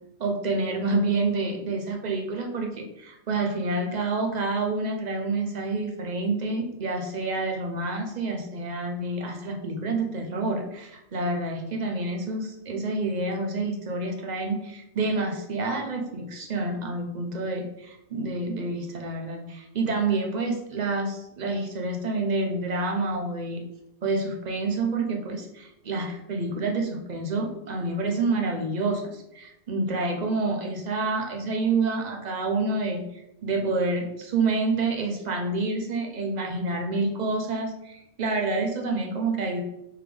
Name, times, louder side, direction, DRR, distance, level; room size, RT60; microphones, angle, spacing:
voice 1, 0.2-23.6 24.0-39.6, right 3 dB, 50° right, 2 dB, 0.6 m, -28 dB
3.4 x 3.3 x 3.3 m, 0.85 s
omnidirectional pair, 1.2 m